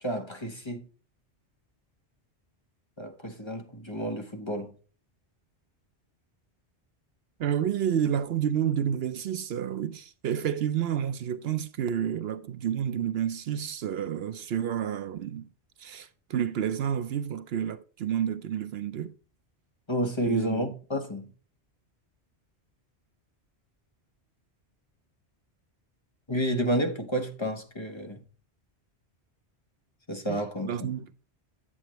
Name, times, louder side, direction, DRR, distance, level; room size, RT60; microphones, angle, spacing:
voice 1, 0.0-0.8 3.0-4.7 19.9-21.3 26.3-28.2 30.1-30.9, equal, 25° left, 1.1 m, -30 dB
voice 2, 7.4-15.5 15.8-19.1 20.2-20.7 30.3-31.1, right 9 dB, 70° right, 0.8 m, -30 dB
9.0 x 8.6 x 3.0 m
omnidirectional pair, 1.1 m